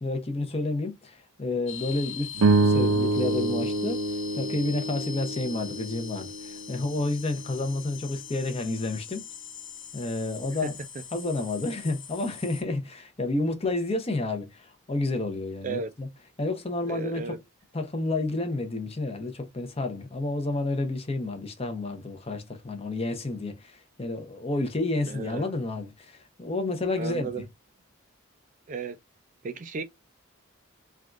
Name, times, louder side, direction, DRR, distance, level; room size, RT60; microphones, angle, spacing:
voice 1, 0.0-9.2 9.9-10.8 11.1-16.1 16.4-17.2 17.7-27.3, left 2 dB, 30° left, 0.7 m, -30 dB
sound 1, 1.7-12.6, left 7 dB, 85° left, 0.9 m, -42 dB
sound 2, 2.4-6.9, right 3 dB, 85° right, 0.5 m, -26 dB
voice 2, 16.9-17.4 25.1-25.5 27.0-27.5 28.7-29.0 29.4-29.8, right 4 dB, 35° right, 0.3 m, -34 dB
3.4 x 2.4 x 2.4 m
head